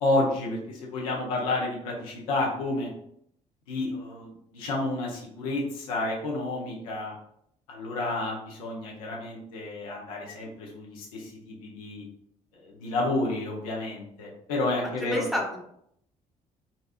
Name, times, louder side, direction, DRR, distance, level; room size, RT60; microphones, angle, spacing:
voice 1, 0.0-2.9 3.7-7.1 7.7-12.0 12.5-15.2, left 2 dB, 85° left, -2 dB, 0.8 m, -30 dB
voice 2, 15.0-15.6, left 1 dB, ahead, -1 dB, 1.0 m, -29 dB
4.0 x 2.4 x 2.4 m, 0.72 s
hypercardioid pair, 50°, 18 cm